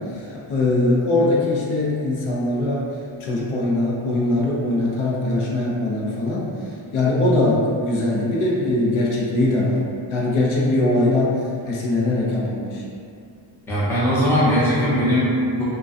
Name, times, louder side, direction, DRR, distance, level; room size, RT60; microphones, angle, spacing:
voice 1, 0.1-2.9 3.2-6.5 6.9-9.8 10.1-12.8, left 2 dB, 70° left, -5 dB, 0.6 m, -21 dB
voice 2, 13.7-15.6, equal, 5° left, -10 dB, 0.4 m, -19 dB
2.5 x 2.2 x 2.2 m, 2.4 s
wide cardioid pair, 160°, 50 cm